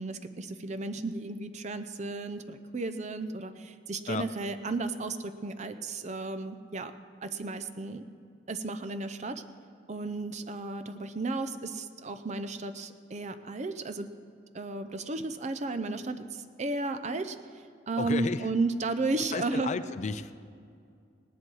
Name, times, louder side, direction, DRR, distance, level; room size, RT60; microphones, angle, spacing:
voice 1, 0.0-6.9 7.2-8.1 8.5-9.4 9.9-14.1 14.5-17.4 17.9-19.7, right 3 dB, 40° right, 10 dB, 0.6 m, -34 dB
voice 2, 18.0-18.4 19.3-20.3, left 4 dB, 40° left, 12 dB, 0.4 m, -32 dB
18.5 x 10.0 x 4.8 m, 2.3 s
head